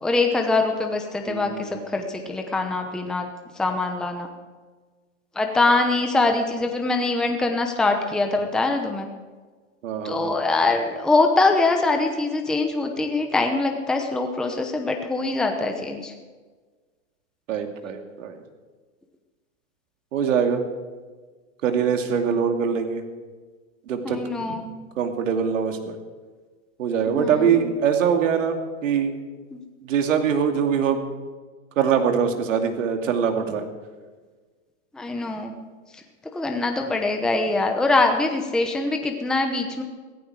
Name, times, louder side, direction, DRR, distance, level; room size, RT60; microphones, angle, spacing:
voice 1, 0.0-3.3 3.5-4.3 5.3-9.1 10.0-16.1 24.0-24.7 27.0-27.7 29.5-29.6 34.9-35.5 35.9-36.0 36.3-39.8, left 3 dB, ahead, 4 dB, 0.8 m, -23 dB
voice 2, 1.3-1.8 9.8-10.4 17.5-18.4 20.1-20.6 21.6-23.0 23.9-24.2 25.0-26.0 26.8-29.1 29.8-31.0 31.8-33.6, right 7 dB, 85° right, 5 dB, 2.6 m, -23 dB
16.5 x 15.0 x 4.8 m, 1.4 s
supercardioid pair, 155°, 37 cm